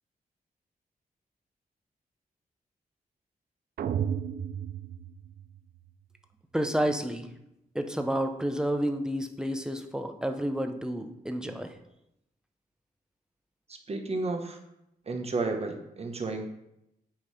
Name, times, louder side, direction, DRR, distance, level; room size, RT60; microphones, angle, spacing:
sound 1, 3.8-5.9, right 8 dB, 75° right, 0.4 m, -33 dB
voice 1, 6.5-7.3 7.7-11.8, right 1 dB, 5° right, 6 dB, 0.7 m, -30 dB
voice 2, 13.7-14.6 15.1-16.5, right 3 dB, 40° right, 3 dB, 1.1 m, -32 dB
8.8 x 3.2 x 5.7 m, 0.83 s
cardioid pair, 85°, 16 cm